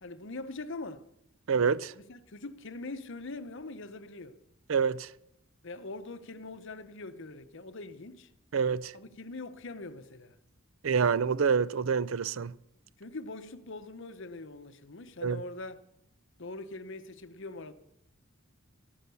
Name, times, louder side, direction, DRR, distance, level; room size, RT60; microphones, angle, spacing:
voice 1, 0.0-1.1 1.9-4.4 5.6-8.3 8.9-10.4 13.0-15.8 16.4-17.7, left 2 dB, 60° left, 0.9 m, -42 dB
voice 2, 1.5-1.9 4.7-5.1 8.5-8.9 10.8-12.5 15.2-15.4, right 6 dB, 70° right, 0.5 m, -27 dB
14.0 x 12.5 x 6.9 m
head